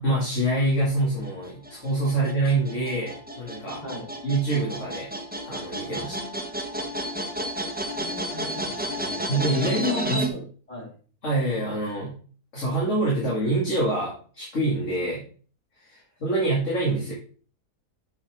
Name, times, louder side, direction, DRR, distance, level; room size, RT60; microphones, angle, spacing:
voice 1, 0.0-3.8 4.2-5.1 5.4-6.2 9.3-10.3 11.2-12.2 12.5-15.2 15.8-17.1, right 2 dB, 45° left, -4 dB, 2.5 m, -25 dB
sound 1, 1.2-10.3, right 1 dB, 10° right, 0.6 m, -32 dB
voice 2, 6.0-6.4 8.0-9.4 9.7-10.9, left 1 dB, 25° left, -4 dB, 3.4 m, -38 dB
7.5 x 6.8 x 3.6 m, 0.41 s
omnidirectional pair, 1.7 m